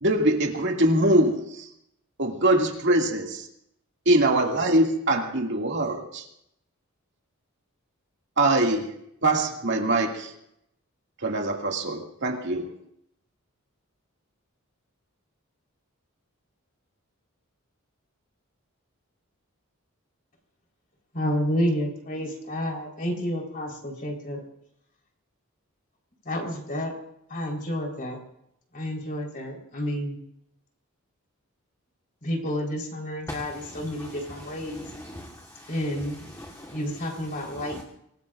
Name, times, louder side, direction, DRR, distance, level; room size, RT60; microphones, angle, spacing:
voice 1, 0.0-1.7 2.2-3.5 4.1-6.2 8.4-8.9 9.2-10.3 11.2-12.7, right 1 dB, 55° right, 1 dB, 2.3 m, -23 dB
voice 2, 21.1-24.4 26.2-26.9 27.3-28.2 28.7-30.2 32.2-34.8 35.7-36.2 36.7-37.8, equal, 40° left, 1 dB, 4.1 m, -30 dB
voice 3, 34.9-35.7 36.4-36.8 37.6-37.8, left 1 dB, 15° left, 1 dB, 1.4 m, -40 dB
25.5 x 19.5 x 2.5 m, 0.76 s
head